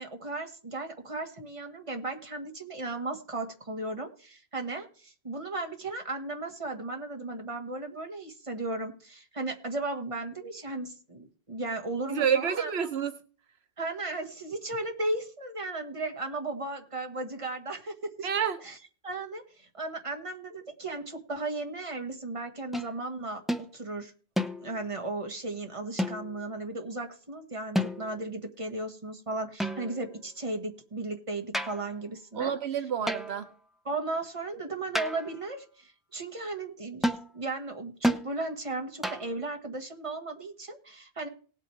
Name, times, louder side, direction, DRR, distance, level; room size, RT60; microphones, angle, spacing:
voice 1, 0.0-12.7 13.8-18.3 18.6-18.8 19.0-24.1 24.6-32.5 33.8-41.3, right 2 dB, 30° right, 1.7 m, -36 dB
voice 2, 12.1-13.1 18.2-18.6 32.4-33.5, right 8 dB, 80° right, 1.1 m, -28 dB
sound 1, 22.7-22.9 23.5-23.7 24.4-24.9 26.0-26.4 27.7-28.3 29.6-30.1 31.5-31.9 33.1-33.5 34.9-35.4 37.0-37.3 38.0-38.3 39.0-39.4, equal, ahead, 0.7 m, -31 dB
19.0 x 8.3 x 3.3 m
omnidirectional pair, 1.1 m